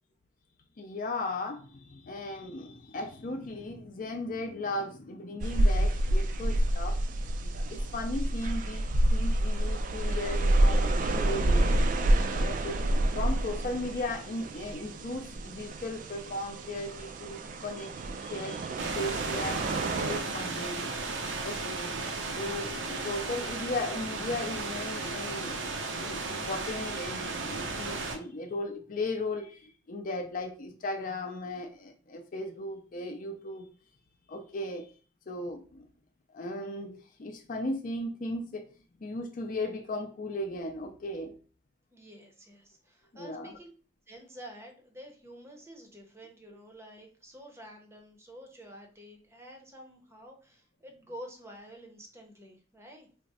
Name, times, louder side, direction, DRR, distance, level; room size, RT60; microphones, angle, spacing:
voice 1, 0.8-7.0 7.7-11.8 12.3-12.8 13.1-20.9 21.4-21.9 22.4-25.6 25.9-33.7 34.3-34.9 35.3-35.9 36.3-38.7 39.0-41.4 43.1-43.6, left 2 dB, 45° left, 0.5 m, -36 dB
sound 1, 5.4-20.2, right 1 dB, 45° right, 0.3 m, -28 dB
sound 2, 18.8-28.2, right 3 dB, 80° right, 0.6 m, -35 dB
voice 2, 41.9-43.7 44.1-53.1, equal, 15° right, 0.6 m, -49 dB
3.4 x 2.0 x 4.1 m
head